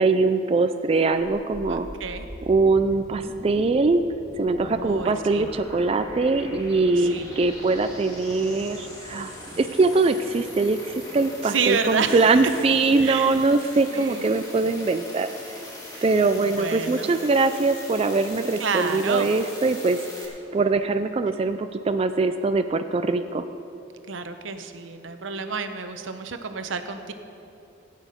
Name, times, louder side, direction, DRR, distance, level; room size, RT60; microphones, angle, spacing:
voice 1, 0.0-1.9 2.5-4.0 4.4-15.3 16.0-23.4, right 3 dB, 30° right, 8 dB, 0.3 m, -22 dB
sound 1, 1.1-20.3, left 1 dB, 20° left, 1.8 m, -41 dB
voice 2, 1.7-2.3 4.6-5.5 7.0-7.3 11.4-12.4 13.0-13.3 13.9-14.3 15.9-16.0 16.4-17.1 18.6-19.3 24.1-27.1, right 5 dB, 85° right, 8 dB, 0.8 m, -29 dB
16.5 x 8.2 x 5.1 m, 2.8 s
head